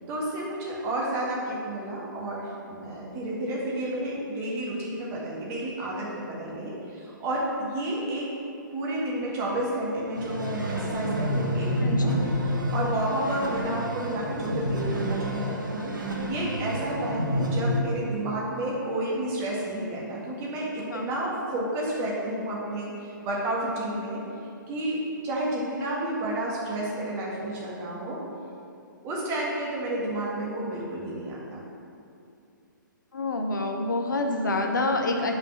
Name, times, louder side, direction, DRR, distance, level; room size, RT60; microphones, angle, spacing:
voice 1, 0.1-8.3 8.7-12.1 12.5-15.9 16.3-24.2 24.7-28.2 29.0-31.6, right 1 dB, 25° right, -4 dB, 1.6 m, -31 dB
sound 1, 10.1-17.8, equal, 70° right, 1.2 m, -29 dB
voice 2, 11.8-12.2 16.2-16.6 20.9-21.1 33.1-35.4, left 2 dB, 65° left, 3 dB, 0.8 m, -28 dB
5.4 x 5.2 x 6.1 m, 2.6 s
figure-of-eight pair, 125°, 11 cm